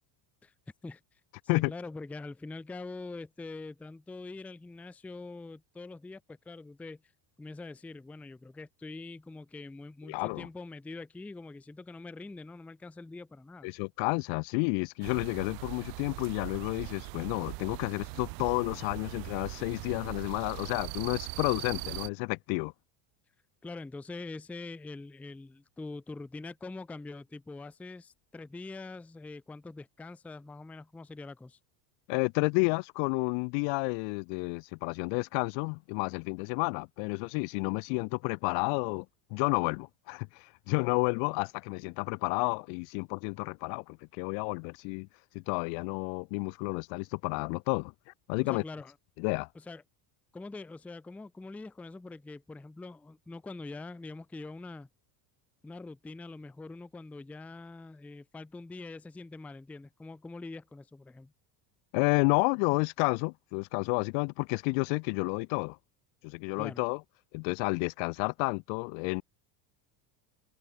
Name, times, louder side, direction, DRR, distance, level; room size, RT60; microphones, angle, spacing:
voice 1, 1.5-7.0 7.4-13.7 23.6-31.6 48.4-48.9 49.5-49.8 50.3-54.9 55.6-61.3 66.6-66.8, left 3 dB, 5° left, 0.5 m, -44 dB
voice 2, 10.1-10.5 13.6-22.7 32.1-39.1 39.3-45.1 45.3-47.9 48.3-48.6 49.2-49.5 61.9-65.8 66.2-67.0 67.3-69.2, left 40 dB or more, 60° left, 0.8 m, -31 dB
sound 1, 15.0-22.1, right 40 dB or more, 65° right, 0.7 m, -41 dB
cardioid pair, 175°, 48 cm